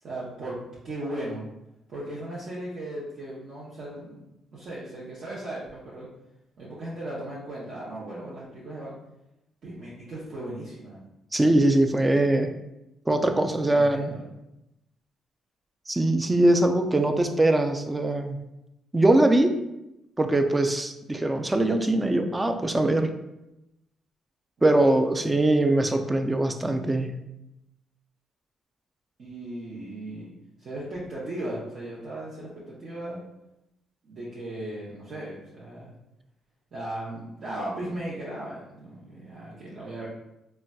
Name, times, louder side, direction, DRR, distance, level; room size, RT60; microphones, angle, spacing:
voice 1, 0.0-0.6 0.8-1.5 1.9-4.1 4.5-6.1 6.6-8.9 9.6-11.0 13.7-14.3 24.7-25.0 29.2-30.3 30.6-33.2 34.0-35.9 36.7-40.1, right 1 dB, 55° right, -8 dB, 0.7 m, -37 dB
voice 2, 11.3-12.5 13.1-14.1 15.9-18.4 18.9-19.6 20.2-23.1 24.6-27.2, right 1 dB, 15° right, 6 dB, 0.3 m, -22 dB
3.9 x 2.2 x 2.3 m, 0.90 s
cardioid pair, 90°, 0 cm